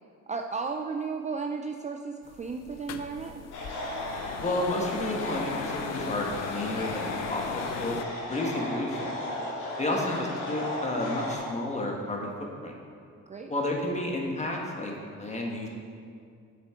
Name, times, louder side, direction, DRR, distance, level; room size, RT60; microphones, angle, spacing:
voice 1, 0.3-3.3 9.8-10.0 13.3-13.5, right 4 dB, 25° right, 3 dB, 0.4 m, -34 dB
sound 1, 2.2-8.0, left 7 dB, 60° left, 0.6 m, -38 dB
sound 2, 3.5-11.4, left 1 dB, 75° left, 2.3 m, -35 dB
voice 2, 4.4-8.0 8.3-9.2 9.8-12.3 12.6-12.7 13.5-15.7, left 1 dB, 25° left, -1 dB, 1.5 m, -31 dB
9.2 x 7.4 x 3.7 m, 2.3 s
cardioid pair, 90°, 30 cm